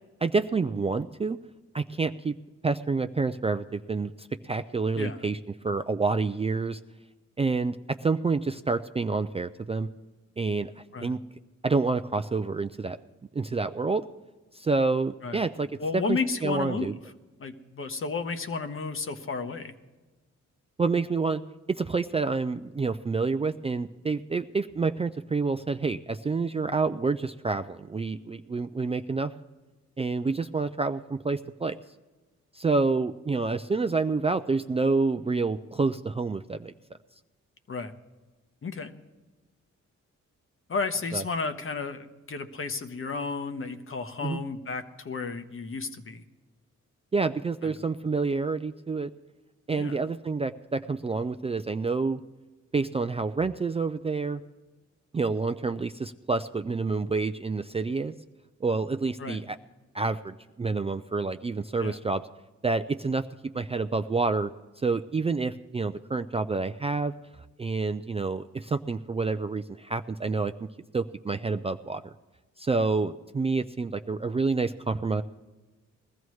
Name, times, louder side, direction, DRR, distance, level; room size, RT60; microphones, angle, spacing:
voice 1, 0.2-1.4 1.7-2.3 2.6-5.4 5.6-6.8 7.4-7.8 8.0-9.9 10.4-10.7 11.0-11.2 11.6-13.0 13.3-14.0 14.5-15.7 15.9-16.9 20.8-21.4 21.7-29.3 30.0-31.8 32.5-36.7 41.1-41.2 44.2-44.4 47.1-49.1 49.7-52.2 52.7-54.4 55.1-58.1 58.6-59.6 59.9-62.2 62.6-63.3 63.5-64.5 64.8-67.1 67.6-70.5 70.9-72.0 72.6-75.2, right 4 dB, 20° right, 9 dB, 0.3 m, -28 dB
voice 2, 15.8-17.0 17.4-19.7 37.7-37.9 38.6-38.9 40.7-46.2 47.6-47.7 49.7-50.0 59.2-59.4 61.8-62.0, left 4 dB, 45° left, 8 dB, 1.0 m, -32 dB
21.0 x 14.0 x 3.2 m, 1.2 s
cardioid pair, 95°, 30 cm